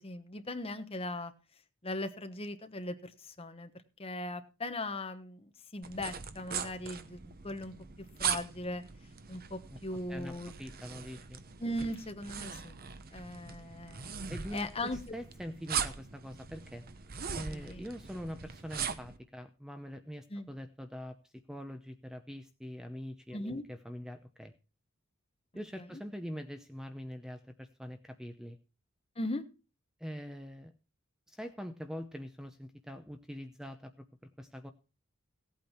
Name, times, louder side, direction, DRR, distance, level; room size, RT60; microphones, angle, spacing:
voice 1, 0.0-1.3 1.8-3.7 4.0-7.7 8.2-8.8 9.3-10.5 11.6-12.8 13.1-14.1 14.5-15.0 17.5-17.8 20.3-20.5 23.3-23.6 25.8-26.0 29.2-29.4, left 1 dB, 30° left, 8 dB, 1.2 m, -39 dB
sound 1, 5.8-19.2, right 7 dB, 45° right, 0.9 m, -40 dB
voice 2, 10.6-11.4 13.4-13.6 14.3-14.7 15.1-16.8 17.3-24.5 25.5-28.6 30.0-30.7 31.3-33.9 34.4-34.7, equal, 5° right, 7 dB, 0.7 m, -44 dB
16.5 x 8.6 x 4.4 m, 0.32 s
head